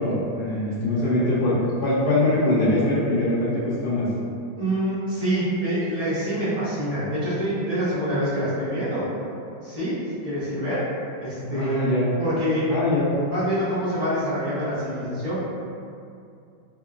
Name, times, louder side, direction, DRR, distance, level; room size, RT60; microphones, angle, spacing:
voice 1, 0.0-4.1 11.4-12.1 12.7-13.1, left 1 dB, 60° left, -9 dB, 1.1 m, -23 dB
voice 2, 4.5-9.1 9.6-10.9 11.2-11.9 12.2-12.7 13.3-15.4, equal, 30° right, -13 dB, 0.6 m, -26 dB
3.6 x 2.0 x 2.4 m, 2.4 s
omnidirectional pair, 2.2 m